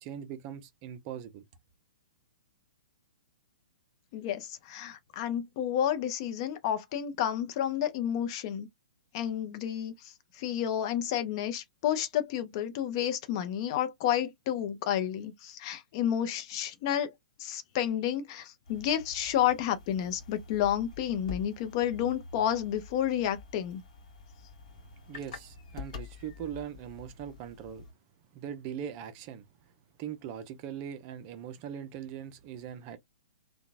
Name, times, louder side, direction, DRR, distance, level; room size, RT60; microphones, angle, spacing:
voice 1, 0.0-1.4 25.1-27.9 28.3-29.5 30.0-33.0, right 9 dB, 30° right, 0.5 m, -41 dB
voice 2, 4.1-8.7 9.1-9.9 10.4-17.1 17.4-23.8, left 10 dB, 35° left, 0.6 m, -30 dB
sound 1, 18.6-27.9, left 5 dB, 50° left, 1.0 m, -47 dB
2.8 x 2.2 x 2.5 m
figure-of-eight pair, 115°, 5 cm